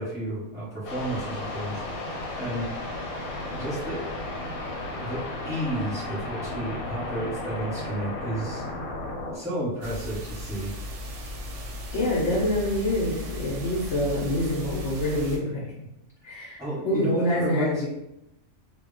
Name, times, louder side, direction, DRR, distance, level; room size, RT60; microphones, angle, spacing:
voice 1, 0.0-1.8 2.3-2.7 3.4-4.1 5.0-8.7 9.3-10.7 15.7-15.9 16.6-17.9, right 1 dB, 5° right, -7 dB, 0.8 m, -31 dB
sound 1, 0.8-9.4, left 2 dB, 90° left, 1.1 m, -34 dB
sound 2, 9.8-15.4, left 1 dB, 70° right, 0.8 m, -36 dB
voice 2, 11.9-15.7 16.2-17.9, left 1 dB, 65° left, -3 dB, 0.8 m, -26 dB
2.2 x 2.1 x 3.7 m, 0.86 s
omnidirectional pair, 1.5 m